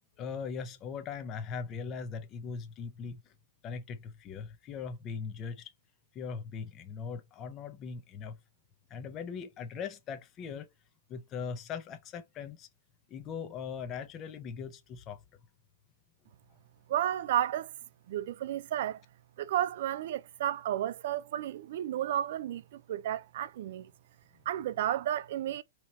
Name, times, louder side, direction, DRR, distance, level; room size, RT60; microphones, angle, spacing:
voice 1, 0.2-3.2 3.6-5.7 6.1-8.4 8.9-10.7 11.1-12.7 13.1-15.2, left 6 dB, 25° left, 0.6 m, -40 dB
voice 2, 16.9-17.7 18.1-19.0 19.4-23.9 24.5-25.6, right 11 dB, 55° right, 0.4 m, -32 dB
4.3 x 3.0 x 4.0 m
hypercardioid pair, 160°, 0 cm